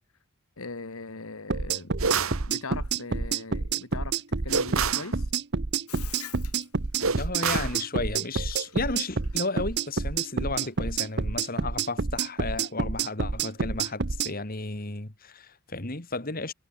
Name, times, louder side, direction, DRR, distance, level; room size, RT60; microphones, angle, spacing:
voice 1, 0.6-2.0 2.5-5.3, left 3 dB, 70° left, 1.4 m, -40 dB
sound 1, 1.5-14.3, right 4 dB, 50° right, 0.9 m, -28 dB
sound 2, 2.0-2.5 4.5-5.1 7.0-7.8, right 5 dB, 70° right, 1.7 m, -27 dB
Bathtub (filling or washing), 5.9-11.2, left 12 dB, 90° left, 2.6 m, -48 dB
voice 2, 7.2-16.5, left 3 dB, 40° left, 2.0 m, -33 dB
head